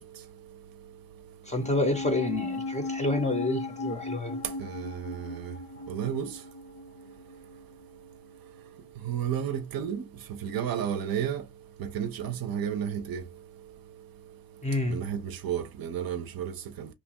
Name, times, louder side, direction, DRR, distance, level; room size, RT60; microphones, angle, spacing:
sound 1, 1.5-8.1 8.3-8.4, left 3 dB, 60° left, 0.7 m, -37 dB
voice 1, 1.5-4.4 14.6-15.0, left 2 dB, 15° left, 0.5 m, -28 dB
voice 2, 4.6-5.5 5.9-6.3 9.1-10.0 10.4-11.4 11.8-13.2 14.9-16.9, right 9 dB, 50° right, 0.6 m, -32 dB
2.9 x 2.2 x 2.8 m
cardioid pair, 120°, 45 cm